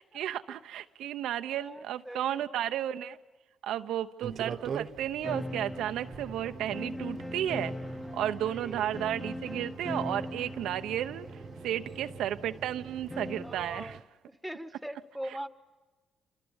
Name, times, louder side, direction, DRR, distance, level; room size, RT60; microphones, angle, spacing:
voice 1, 0.0-3.2 3.6-7.7 8.1-11.3 11.6-14.0, right 11 dB, 80° right, 9 dB, 0.8 m, -33 dB
voice 2, 1.5-2.4 3.8-4.0 8.0-9.0 13.4-14.0 14.3-15.5, equal, ahead, 10 dB, 1.4 m, -42 dB
sound 1, 4.2-14.0, right 6 dB, 55° right, 1.1 m, -44 dB
sound 2, 5.2-13.6, left 1 dB, 15° left, 1.4 m, -41 dB
28.5 x 28.0 x 7.2 m, 1.3 s
cardioid pair, 90°, 0 cm